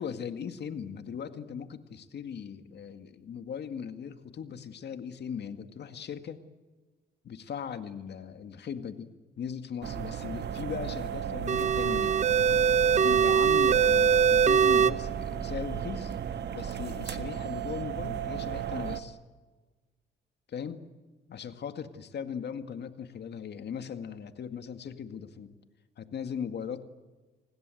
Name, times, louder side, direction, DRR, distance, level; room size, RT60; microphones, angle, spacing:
voice 1, 0.0-6.4 7.2-12.2 12.9-16.2 16.5-19.2 20.5-20.8 21.3-25.6 26.0-26.8, left 7 dB, 60° left, 9 dB, 2.0 m, -38 dB
sound 1, 9.8-19.0, right 9 dB, 60° right, 1.6 m, -35 dB
sound 2, 11.5-14.9, right 7 dB, 35° right, 0.9 m, -22 dB
29.5 x 20.5 x 7.9 m, 1.3 s
cardioid pair, 90°, 20 cm